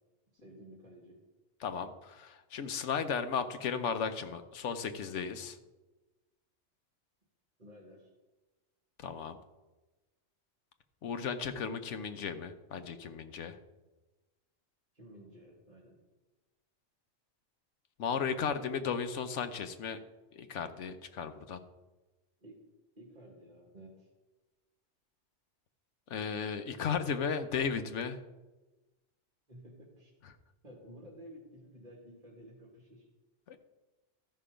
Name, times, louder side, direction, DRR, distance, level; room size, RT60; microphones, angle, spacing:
voice 1, 0.3-1.2 7.6-8.1 14.9-16.0 22.4-22.6 23.0-24.1 29.5-30.1 30.6-33.1, equal, 40° right, -2 dB, 1.9 m, -53 dB
voice 2, 1.6-5.6 9.0-9.4 11.0-13.6 18.0-20.0 20.3-21.6 26.1-28.2 33.5-33.6, left 6 dB, 85° left, 9 dB, 1.1 m, -35 dB
13.5 x 5.6 x 5.0 m, 1.1 s
omnidirectional pair, 1.2 m